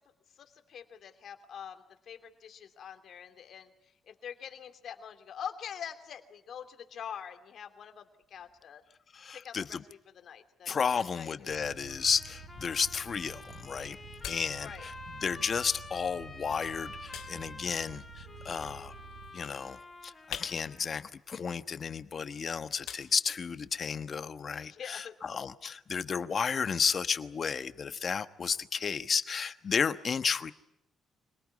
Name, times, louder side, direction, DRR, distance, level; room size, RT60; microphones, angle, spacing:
voice 1, 0.3-8.8 9.3-10.7 11.0-11.5 14.6-14.9 24.6-25.2, left 8 dB, 65° left, 7 dB, 2.9 m, -45 dB
voice 2, 9.1-9.8 10.7-14.0 14.3-18.9 19.3-30.5, left 6 dB, 45° left, 12 dB, 1.2 m, -33 dB
sound 1, 11.5-19.3, right 5 dB, 45° right, 8.0 m, -50 dB
Trumpet, 11.9-21.1, left 2 dB, 15° left, 5.3 m, -49 dB
sound 2, 12.0-24.0, left 10 dB, 80° left, 3.4 m, -51 dB
26.0 x 19.0 x 9.6 m, 0.82 s
cardioid pair, 90°, 0 cm